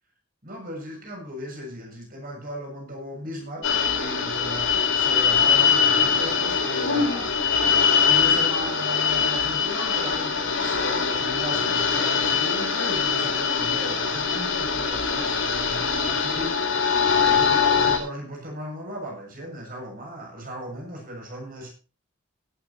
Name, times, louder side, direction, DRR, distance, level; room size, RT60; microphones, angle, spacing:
voice 1, 0.4-7.8 8.1-21.7, equal, 45° right, 1 dB, 7.1 m, -37 dB
sound 1, 3.6-18.0, left 6 dB, 85° left, 4.7 m, -22 dB
17.5 x 12.5 x 3.0 m, 0.34 s
head